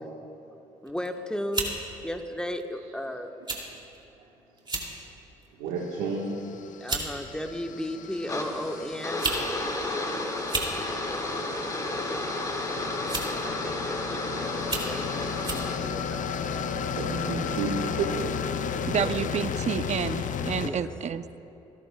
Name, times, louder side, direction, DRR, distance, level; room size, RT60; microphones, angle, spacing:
voice 1, 0.8-3.3 6.8-9.2 13.0-16.7 18.9-19.2 20.6-20.9, left 1 dB, 5° left, 5 dB, 1.2 m, -35 dB
sound 1, 0.9-1.1 1.5-1.8 2.6-2.8 3.5-3.6 3.9-4.1 4.6-4.9 5.4-5.7 6.5-6.6 6.9-7.1 8.2-8.3 9.0-9.4 9.7-9.8 10.4-10.7 12.0-12.3 13.1-13.4 14.0-14.1 14.6-14.9 15.4-15.7, right 3 dB, 30° right, 2.6 m, -31 dB
voice 2, 5.6-6.3 16.9-18.3, right 4 dB, 85° right, -4 dB, 1.5 m, -31 dB
sound 2, 6.0-20.7, left 7 dB, 50° left, 0.6 m, -34 dB
sound 3, 8.3-15.8, left 1 dB, 20° left, 1.9 m, -32 dB
voice 3, 18.9-21.4, right 7 dB, 45° right, 13 dB, 0.6 m, -29 dB
26.0 x 11.0 x 2.3 m, 2.9 s
hypercardioid pair, 50°, 16 cm